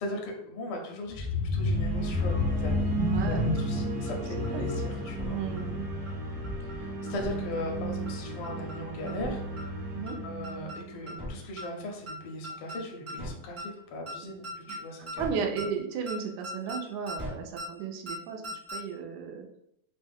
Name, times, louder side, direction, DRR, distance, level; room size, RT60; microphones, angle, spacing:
voice 1, 0.0-2.9 3.2-5.4 6.6-9.7 10.2-15.3, left 1 dB, 75° left, 1 dB, 1.3 m, -38 dB
sound 1, 1.1-6.9 7.2-7.5 7.8-7.9, left 3 dB, 60° left, 0.8 m, -31 dB
sound 2, 1.6-11.7, right 2 dB, 65° right, 0.9 m, -35 dB
voice 2, 3.1-3.9 4.4-4.7 5.3-5.8 9.9-10.2 15.2-19.5, right 6 dB, 90° right, 2 dB, 2.1 m, -35 dB
sound 3, 3.6-3.7 4.1-4.2 4.4-4.7 5.1-5.3 5.6-5.7 6.1-6.2 6.4-6.7 7.1-7.3 7.6-7.7 8.1-8.2 8.4-8.8 9.1-9.3 9.6-9.7 10.1-10.2 10.4-10.8 11.1-11.3 11.6-11.7 12.1-12.2 12.4-12.8 13.1-13.3 13.6-13.7 14.1-14.2 14.4-14.8 15.1-15.3 15.6-15.7 16.1-16.2 16.4-16.8 17.1-17.3 17.6-17.7 18.1-18.2 18.4-18.8, equal, 30° right, 0.5 m, -38 dB
4.8 x 2.1 x 3.5 m, 0.75 s
omnidirectional pair, 3.4 m